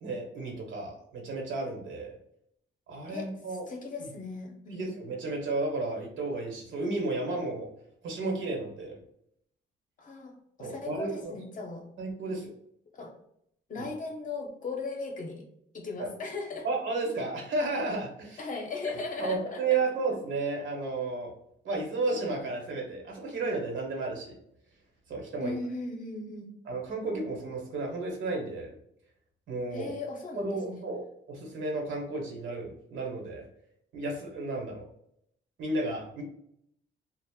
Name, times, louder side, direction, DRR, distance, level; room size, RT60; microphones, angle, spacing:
voice 1, 0.0-2.2 2.9-3.7 4.7-7.7 8.0-9.0 10.6-11.3 12.0-12.5 13.8-13.9 16.0-16.1 16.6-18.4 19.2-21.3 21.6-24.4 25.1-25.5 26.7-28.7 29.5-29.9 30.3-33.4 33.9-34.8 35.6-36.2, right 3 dB, 70° right, 1 dB, 1.0 m, -33 dB
voice 2, 3.1-4.9 10.0-11.8 12.3-12.4 12.9-13.1 13.7-15.4 15.7-16.7 18.4-19.8 25.4-26.5 29.7-30.8, left 3 dB, 40° left, 2 dB, 0.7 m, -38 dB
2.5 x 2.0 x 3.5 m, 0.73 s
cardioid pair, 90°, 20 cm